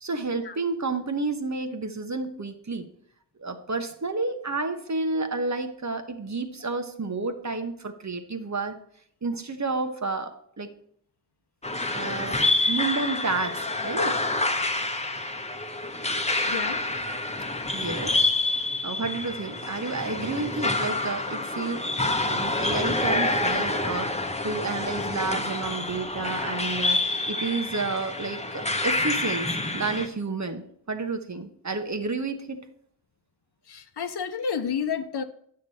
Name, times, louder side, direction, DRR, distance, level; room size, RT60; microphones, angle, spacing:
voice 1, 0.0-2.8 3.4-8.8 9.2-10.7 11.9-12.4 12.7-14.2 17.7-18.2 18.8-21.8 22.3-32.6, right 3 dB, 40° right, 7 dB, 1.2 m, -30 dB
sound 1, 11.6-30.1, left 2 dB, 15° left, 1.1 m, -27 dB
voice 2, 16.5-16.8 33.7-35.2, left 6 dB, 70° left, 9 dB, 0.9 m, -30 dB
9.4 x 6.7 x 4.2 m, 0.66 s
cardioid pair, 45°, 41 cm